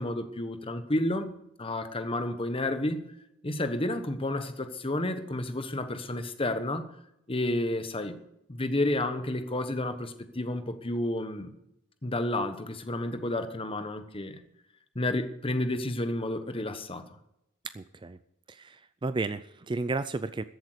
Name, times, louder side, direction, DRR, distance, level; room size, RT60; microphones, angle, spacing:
voice 1, 0.0-3.0 3.4-6.8 7.3-8.2 8.5-11.5 12.0-14.4 14.9-17.0, left 1 dB, 25° left, 9 dB, 1.1 m, -31 dB
voice 2, 17.7-18.2 18.5-20.4, right 3 dB, 20° right, 13 dB, 0.4 m, -33 dB
14.0 x 8.2 x 6.6 m, 0.80 s
head